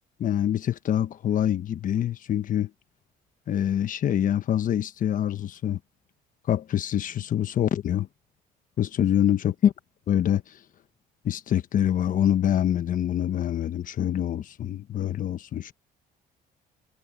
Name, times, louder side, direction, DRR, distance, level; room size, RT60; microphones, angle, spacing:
voice 1, 0.2-2.7 3.5-5.8 6.5-8.1 8.8-9.7 10.1-10.6 11.2-15.7, left 10 dB, 50° left, 1.2 m, -25 dB
cardioid pair, 110°, 17 cm